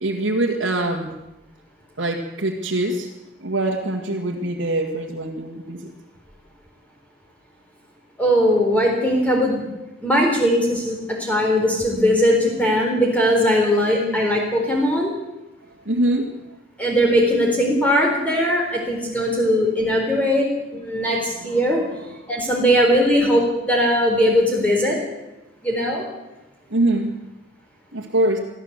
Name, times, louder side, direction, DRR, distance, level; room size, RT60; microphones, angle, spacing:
voice 1, 0.0-1.1 2.0-3.1 3.4-5.9 14.0-14.2 15.9-16.3 21.4-21.6 22.3-22.4 26.7-27.1 27.9-28.4, right 1 dB, 80° right, -2 dB, 2.1 m, -23 dB
voice 2, 8.2-9.6 10.0-15.1 16.8-20.5 20.8-21.8 22.3-25.0 25.6-26.0, equal, 5° left, -1 dB, 4.0 m, -19 dB
23.5 x 14.5 x 8.2 m, 0.98 s
head